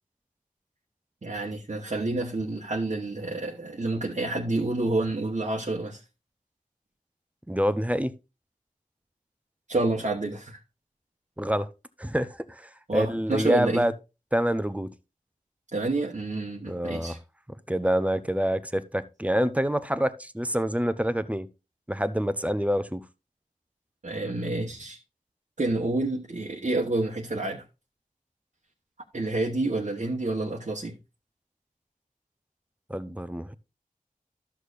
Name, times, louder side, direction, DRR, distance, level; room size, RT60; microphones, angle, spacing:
voice 1, 1.2-6.0 9.7-10.6 12.9-13.9 15.7-17.2 24.0-25.0 25.6-27.6 29.1-31.0, right 2 dB, 55° right, 1.1 m, -29 dB
voice 2, 7.5-8.1 11.4-11.7 12.0-13.9 14.3-14.9 16.7-17.2 17.7-21.5 21.9-23.0 32.9-33.5, equal, 10° right, 0.7 m, -26 dB
13.0 x 6.5 x 2.5 m
wide cardioid pair, 60°, 15 cm